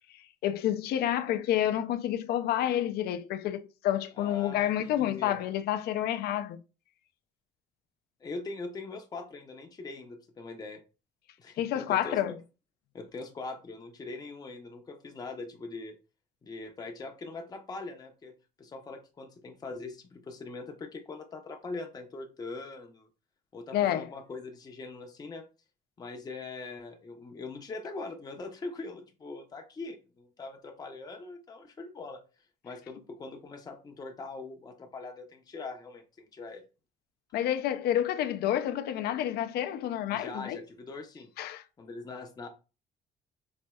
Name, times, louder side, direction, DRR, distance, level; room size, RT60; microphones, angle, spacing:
voice 1, 0.4-6.6 11.6-12.4 23.7-24.1 37.3-40.6 41.4-41.6, left 11 dB, 70° left, 0.4 m, -29 dB
voice 2, 4.2-5.4 8.2-10.8 11.4-12.4 12.9-16.0 16.4-18.3 18.6-23.1 23.5-25.4 26.0-32.2 32.6-36.6 40.1-41.3 41.8-42.5, left 3 dB, 25° left, 0.6 m, -42 dB
4.1 x 2.6 x 2.2 m
cardioid pair, 110°, 17 cm